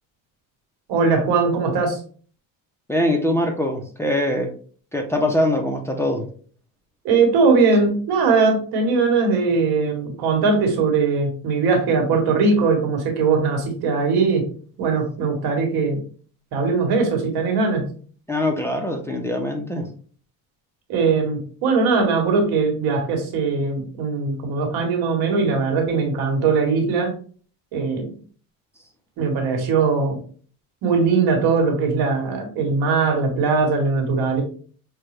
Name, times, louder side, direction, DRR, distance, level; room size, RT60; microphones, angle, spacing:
voice 1, 0.9-2.0 7.0-14.5 14.8-16.0 16.5-17.9 20.9-27.1 27.7-28.1 29.2-30.2 30.8-34.4, right 4 dB, 85° right, 3 dB, 1.5 m, -20 dB
voice 2, 2.9-4.5 4.9-6.3 18.3-19.9, left 1 dB, 5° left, 1 dB, 0.5 m, -22 dB
6.0 x 2.2 x 3.2 m, 0.43 s
cardioid pair, 135°, 37 cm